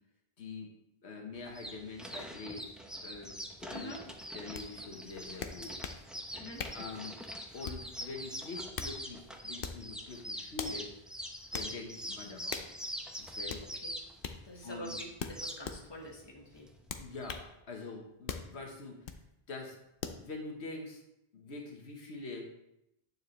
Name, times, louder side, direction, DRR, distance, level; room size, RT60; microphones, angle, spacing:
voice 1, 0.4-0.7 1.0-2.7 3.0-3.3 3.6-4.0 4.3-5.8 6.7-7.2 7.5-10.9 11.5-12.7 13.2-13.6 14.6-14.9 17.0-19.0 19.5-19.8 20.0-21.0 21.3-22.5, left 3 dB, 90° left, 1 dB, 1.5 m, -44 dB
sound 1, 1.3-17.4, equal, ahead, 0.6 m, -43 dB
sound 2, 4.5-4.7 5.4-6.0 6.6-6.9 7.6-7.9 8.5-9.0 9.6-9.9 10.6-10.8 11.5-11.7 12.5-12.7 13.5-13.7 14.2-14.4 15.2-15.8 16.9-17.5 18.3-18.5 19.0-19.2 20.0-20.2, left 6 dB, 60° left, 0.8 m, -40 dB
voice 2, 14.4-16.7, equal, 25° left, -1 dB, 1.4 m, -46 dB
9.4 x 6.7 x 3.2 m, 0.83 s
omnidirectional pair, 1.1 m